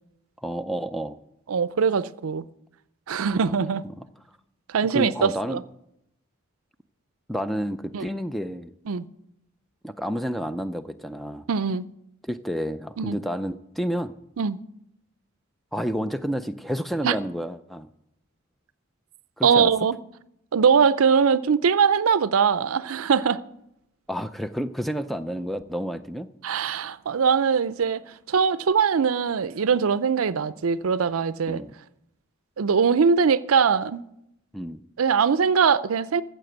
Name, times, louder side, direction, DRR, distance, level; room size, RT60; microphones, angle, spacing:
voice 1, 0.4-1.2 3.3-3.5 4.9-5.6 7.3-8.7 9.8-11.5 12.2-14.2 15.7-17.9 19.4-19.7 24.1-26.3 31.5-31.7 34.5-34.8, equal, ahead, 0.4 m, -30 dB
voice 2, 1.5-2.4 3.1-3.8 4.7-5.6 7.9-8.1 8.9-9.1 11.5-11.9 13.0-13.2 14.4-14.6 17.0-17.1 19.4-20.0 20.5-23.4 26.4-28.0 28.3-31.6 32.6-34.0 35.0-36.2, right 6 dB, 85° right, 0.5 m, -21 dB
14.0 x 7.6 x 7.9 m
head